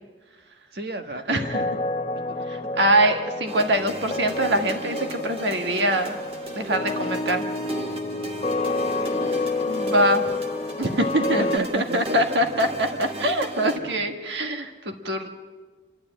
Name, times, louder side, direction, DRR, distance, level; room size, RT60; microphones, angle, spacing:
voice 1, 0.7-1.8 2.3-2.4 8.2-9.5 11.4-12.4 13.8-14.2, right 2 dB, 60° right, 6 dB, 1.3 m, -35 dB
sound 1, 1.3-11.6, left 2 dB, 30° left, 0.8 m, -29 dB
voice 2, 1.3-1.6 2.5-6.2 6.5-7.5 9.7-10.2 10.8-15.3, right 1 dB, 75° right, 4 dB, 1.5 m, -23 dB
sound 2, 3.5-13.8, right 1 dB, 30° right, 2.0 m, -37 dB
28.5 x 11.5 x 9.0 m, 1.4 s
head